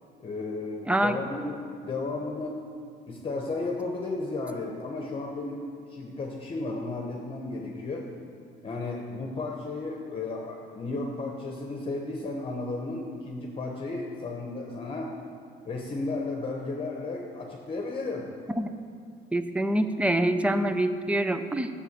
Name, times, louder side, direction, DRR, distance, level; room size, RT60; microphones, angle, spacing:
voice 1, 0.2-2.7 3.1-8.1 8.6-15.2 15.6-18.4, left 3 dB, 35° left, 1 dB, 1.1 m, -34 dB
voice 2, 0.9-1.2 18.6-18.7 19.3-21.7, right 1 dB, 5° right, 9 dB, 0.5 m, -25 dB
8.0 x 7.0 x 7.3 m, 2.3 s
cardioid pair, 110°, 17 cm